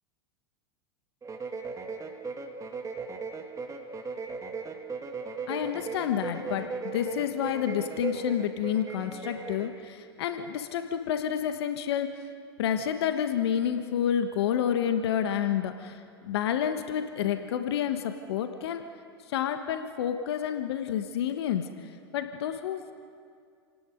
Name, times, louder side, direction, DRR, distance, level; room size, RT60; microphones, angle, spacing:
sound 1, 1.2-9.8, right 4 dB, 25° right, 2.2 m, -37 dB
voice 1, 5.5-6.7 6.9-12.1 12.6-18.8 19.3-21.7 22.1-22.9, left 9 dB, 70° left, 8 dB, 1.3 m, -29 dB
30.0 x 18.0 x 5.2 m, 2.2 s
hypercardioid pair, 90°, 14 cm